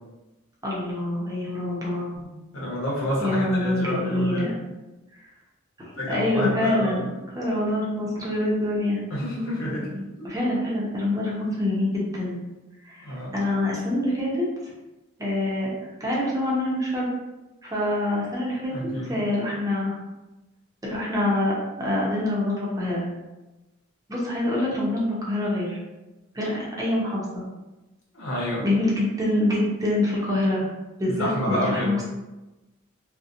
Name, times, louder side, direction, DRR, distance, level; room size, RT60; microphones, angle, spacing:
voice 1, 0.6-2.2 3.2-4.5 5.8-9.0 10.2-12.4 12.8-14.4 15.2-15.7 16.0-17.1 17.6-18.7 19.0-19.9 20.8-23.0 24.1-25.8 26.3-27.4 28.6-30.7 31.0-32.1, left 1 dB, 15° right, -5 dB, 0.6 m, -25 dB
voice 2, 2.5-4.6 5.9-7.1 9.1-10.3 13.0-13.3 18.7-19.2 28.1-28.7 31.1-32.0, left 1 dB, 85° left, -6 dB, 0.9 m, -29 dB
2.7 x 2.1 x 2.5 m, 1.1 s
head